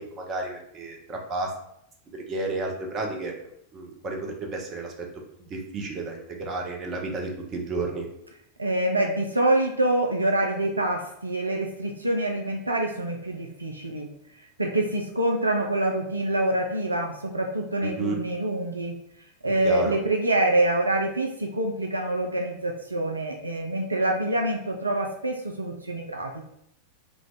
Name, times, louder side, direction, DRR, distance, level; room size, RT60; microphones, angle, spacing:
voice 1, 0.0-1.5 2.1-3.3 3.7-5.1 5.4-8.1 17.8-18.2 19.5-20.0, right 3 dB, 30° right, 1 dB, 0.6 m, -32 dB
voice 2, 8.6-14.1 14.6-18.9 19.4-26.4, right 1 dB, 80° right, 1 dB, 0.3 m, -26 dB
2.4 x 2.3 x 3.8 m, 0.74 s
figure-of-eight pair, 90°, 0 cm